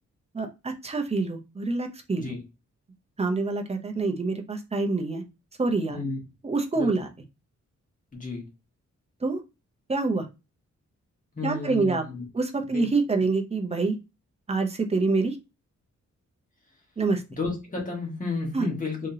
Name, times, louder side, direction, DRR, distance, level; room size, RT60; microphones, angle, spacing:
voice 1, 0.3-2.3 3.2-5.2 5.6-6.0 6.4-7.1 9.2-9.4 9.9-10.3 11.4-12.0 12.3-14.0 14.5-15.4 17.0-17.2 18.5-18.7, right 3 dB, 20° right, 4 dB, 0.6 m, -26 dB
voice 2, 8.1-8.4 11.3-12.2 12.7-12.9 17.3-19.1, left 3 dB, 25° left, 0 dB, 1.4 m, -32 dB
3.7 x 3.2 x 2.7 m, 0.26 s
wide cardioid pair, 175°, 30 cm